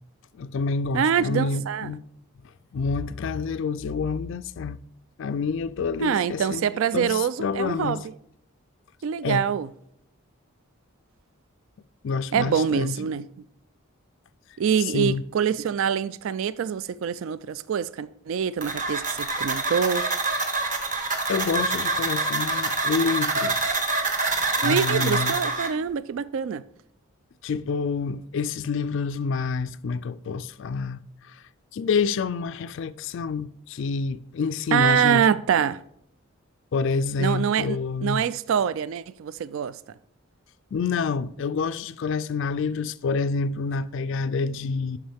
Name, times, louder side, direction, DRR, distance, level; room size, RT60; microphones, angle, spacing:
voice 1, 0.3-2.0 2.7-4.8 5.2-8.0 9.2-9.5 12.0-13.0 14.8-15.2 20.8-21.0 21.3-23.8 24.6-25.4 27.4-31.4 31.7-35.3 36.7-38.3 40.7-45.0, left 5 dB, 55° left, 0.3 m, -28 dB
voice 2, 0.9-1.9 6.0-8.0 9.0-9.7 12.3-13.2 14.6-20.0 24.6-26.6 34.7-35.8 37.2-39.8, right 8 dB, 65° right, 0.3 m, -25 dB
sound 1, 18.6-25.7, right 3 dB, 35° right, 1.2 m, -26 dB
11.5 x 4.8 x 3.4 m
head